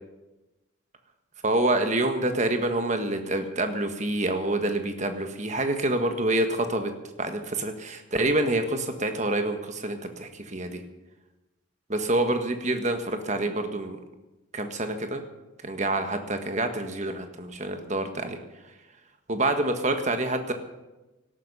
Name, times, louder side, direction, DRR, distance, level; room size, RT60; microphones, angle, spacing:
voice 1, 1.4-6.9 7.2-10.8 11.9-14.0 14.5-15.2 15.6-18.4 19.3-20.5, right 2 dB, 35° right, 7 dB, 1.5 m, -27 dB
18.0 x 13.0 x 5.6 m, 1.1 s
head